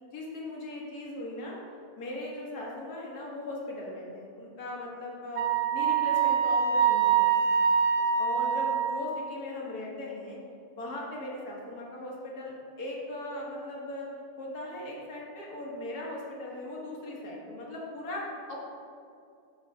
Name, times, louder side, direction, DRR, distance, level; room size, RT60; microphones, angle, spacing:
voice 1, 0.1-1.6 2.0-5.4 5.7-7.6 8.2-10.4 10.8-14.1 14.4-18.6, left 1 dB, 75° left, -3 dB, 1.8 m, -38 dB
Wind instrument woodwind instrument, 5.4-9.2, right 7 dB, 85° right, 1.2 m, -25 dB
7.8 x 6.3 x 2.7 m, 2.4 s
omnidirectional pair, 1.6 m